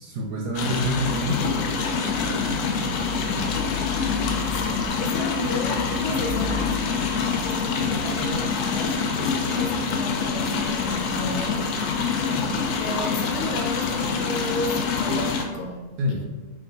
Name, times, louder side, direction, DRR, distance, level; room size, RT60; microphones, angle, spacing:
voice 1, 0.0-2.2 2.5-3.6 16.0-16.2, equal, 75° right, -1 dB, 1.1 m, -29 dB
sound 1, 0.5-15.4, left 5 dB, 85° left, 1.1 m, -25 dB
voice 2, 4.2-7.0 7.4-11.7 12.8-16.2, left 2 dB, 60° left, 2 dB, 0.9 m, -34 dB
3.5 x 3.0 x 3.8 m, 1.2 s
omnidirectional pair, 1.6 m